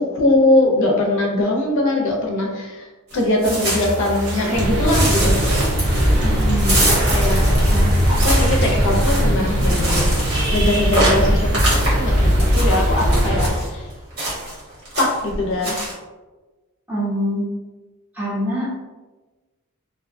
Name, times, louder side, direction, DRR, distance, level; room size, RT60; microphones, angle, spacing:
voice 1, 0.0-2.9 3.1-5.3 7.1-7.4 8.1-10.1 10.5-13.8 15.0-15.7, left 1 dB, 60° left, 0 dB, 0.5 m, -21 dB
sound 1, 3.1-4.5 4.8-13.7 14.2-14.6 14.8-15.3 15.6-15.9, right 1 dB, 70° right, 1.2 m, -25 dB
sound 2, 3.4-13.3, equal, 85° right, 0.6 m, -28 dB
sound 3, 4.5-13.5, equal, 55° right, 0.7 m, -19 dB
voice 2, 6.2-6.8 7.7-7.9 16.9-17.5 18.1-18.7, equal, 10° right, -7 dB, 0.7 m, -24 dB
2.6 x 2.1 x 2.5 m, 1.2 s
head